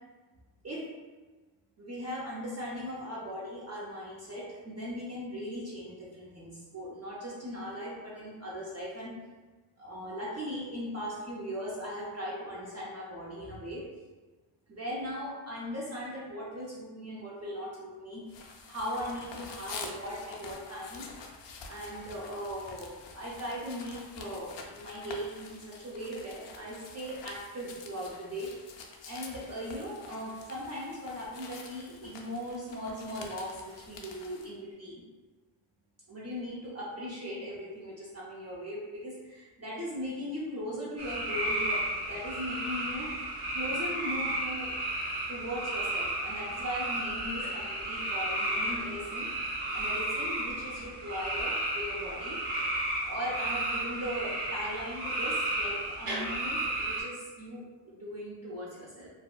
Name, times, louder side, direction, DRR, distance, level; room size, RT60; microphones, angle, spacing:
voice 1, 1.8-9.1 9.8-13.8 14.7-18.2 18.7-21.1 21.6-28.5 29.1-35.0 36.1-43.1 43.5-44.7 45.3-49.3 49.7-52.4 53.0-59.1, equal, 30° right, -6 dB, 0.5 m, -39 dB
sound 1, 18.3-34.5, left 4 dB, 60° left, 0.5 m, -47 dB
sound 2, 41.0-57.0, right 1 dB, 85° right, 0.9 m, -33 dB
2.7 x 2.2 x 2.3 m, 1.2 s
cardioid pair, 80°, 50 cm